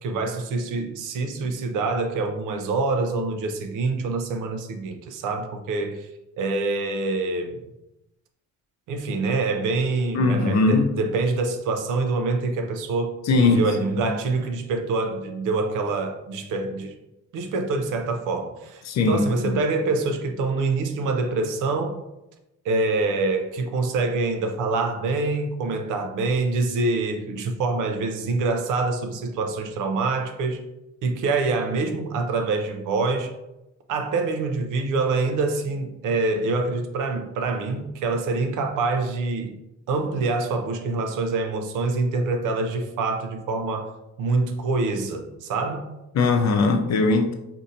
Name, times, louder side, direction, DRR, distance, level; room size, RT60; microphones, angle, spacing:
voice 1, 0.0-6.1 6.4-7.6 8.9-16.9 17.3-22.0 22.6-30.6 31.0-33.3 33.9-39.5 39.9-43.9 44.2-45.9, right 3 dB, 85° right, 0.5 m, -25 dB
voice 2, 10.1-10.9 13.3-13.6 13.9-14.1 18.8-19.6 46.1-47.3, left 3 dB, 65° left, 0.6 m, -20 dB
4.0 x 2.7 x 2.5 m
cardioid pair, 90°, 30 cm